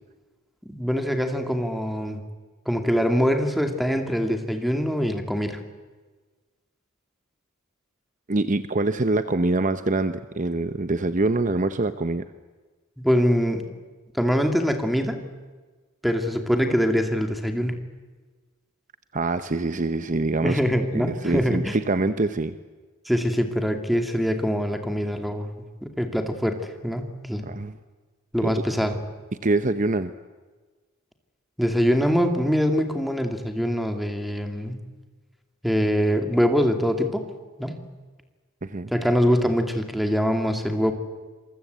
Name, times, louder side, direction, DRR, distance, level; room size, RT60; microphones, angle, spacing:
voice 1, 0.7-2.2 2.7-5.6 13.0-13.7 14.1-15.3 16.0-17.8 20.4-21.8 23.1-27.4 28.3-29.0 31.6-34.8 35.6-37.2 37.6-37.9 38.9-40.9, equal, ahead, 5 dB, 2.6 m, -24 dB
voice 2, 8.3-12.2 19.1-20.6 20.9-22.6 27.5-27.8 28.4-28.5 29.4-30.1 38.6-38.9, right 2 dB, 40° right, 11 dB, 0.9 m, -24 dB
27.5 x 23.5 x 8.3 m, 1.3 s
head